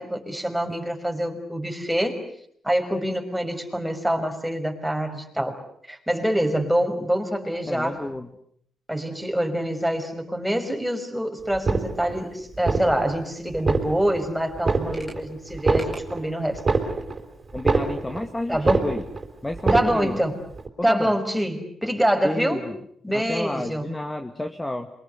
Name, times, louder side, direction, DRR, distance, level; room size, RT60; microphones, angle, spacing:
voice 1, 0.0-2.2 2.6-5.6 5.9-7.9 8.9-16.6 18.5-18.9 19.7-20.4 20.8-22.6 23.0-23.8, equal, 5° right, 3 dB, 5.5 m, -25 dB
voice 2, 7.6-8.3 17.5-19.0 19.4-20.2 20.8-21.1 22.2-22.8 23.1-24.9, left 1 dB, 15° left, 5 dB, 1.9 m, -30 dB
sound 1, 11.5-12.2 12.6-13.2 13.5-14.2 14.6-15.2 15.5-18.3 18.6-19.2 19.5-20.2 20.6-20.7, right 3 dB, 35° right, 4.5 m, -25 dB
27.5 x 24.0 x 8.1 m, 0.67 s
cardioid pair, 85°, 0 cm